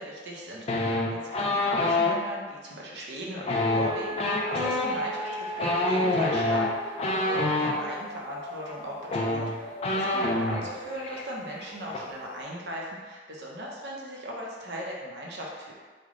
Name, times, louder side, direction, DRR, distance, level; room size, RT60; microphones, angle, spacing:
voice 1, 0.0-15.7, equal, 70° right, -2 dB, 0.7 m, -38 dB
sound 1, 0.7-2.1 3.4-7.8 8.7-8.8 9.0-10.7 11.0-11.2 11.5-12.0, left 2 dB, 35° left, 0.4 m, -26 dB
sound 2, 3.5-12.4, left 1 dB, 55° left, 0.8 m, -40 dB
3.3 x 2.2 x 3.6 m, 1.4 s
head